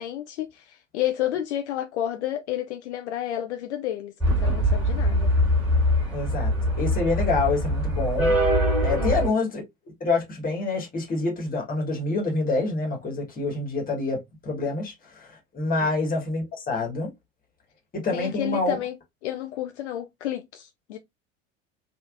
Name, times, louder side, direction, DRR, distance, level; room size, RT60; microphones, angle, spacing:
voice 1, 0.0-5.3 9.0-9.3 15.8-15.9 18.1-18.9 19.2-21.0, left 12 dB, 60° left, 0.5 m, -31 dB
sound 1, 4.2-9.3, equal, 5° right, 2.0 m, -23 dB
voice 2, 6.1-6.5 6.8-8.3 8.8-9.6 10.0-17.1 17.9-18.7, left 3 dB, 20° left, 1.4 m, -27 dB
3.4 x 2.5 x 2.5 m
figure-of-eight pair, 75°, 39 cm